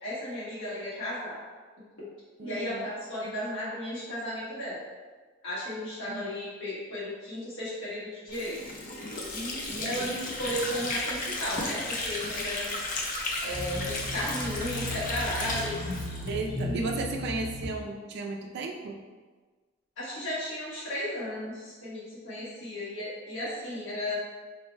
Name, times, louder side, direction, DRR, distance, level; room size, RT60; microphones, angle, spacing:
voice 1, 0.0-1.4 2.4-4.8 5.4-8.6 9.3-12.9 13.4-15.9 16.5-16.9 20.0-24.1, left 1 dB, 75° left, -10 dB, 1.4 m, -35 dB
voice 2, 2.4-2.9 6.1-6.3 9.7-10.1 16.3-19.0, right 3 dB, 60° right, 2 dB, 0.3 m, -34 dB
Water / Sink (filling or washing), 8.3-16.8, left 2 dB, 45° left, 0.6 m, -34 dB
sound 1, 13.5-17.7, left 1 dB, 5° left, 0.7 m, -36 dB
3.8 x 2.1 x 4.4 m, 1.4 s
head